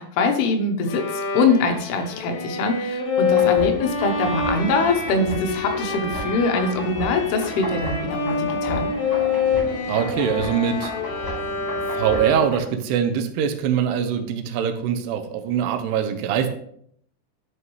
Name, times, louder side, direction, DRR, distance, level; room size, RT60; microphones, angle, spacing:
voice 1, 0.0-8.9, left 3 dB, 80° left, 4 dB, 2.9 m, -23 dB
Bowed string instrument, 0.9-12.7, left 5 dB, 60° left, 2.3 m, -26 dB
sound 1, 3.2-12.6, left 1 dB, 25° left, 3.4 m, -34 dB
voice 2, 9.9-10.9 11.9-16.5, right 8 dB, 80° right, 8 dB, 2.7 m, -23 dB
11.0 x 5.5 x 3.1 m, 0.67 s
omnidirectional pair, 4.8 m